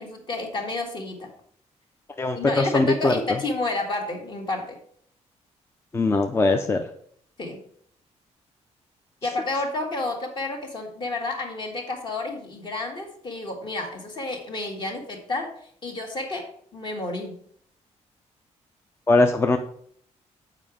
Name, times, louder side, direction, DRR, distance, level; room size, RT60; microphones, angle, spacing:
voice 1, 0.0-1.3 2.3-4.8 7.4-7.6 9.2-15.5 15.8-17.4, left 2 dB, 40° left, 3 dB, 1.5 m, -30 dB
voice 2, 2.2-3.1 5.9-6.8 19.1-19.6, left 3 dB, 20° left, 6 dB, 0.4 m, -20 dB
7.5 x 4.9 x 5.0 m, 0.63 s
cardioid pair, 150°, 12 cm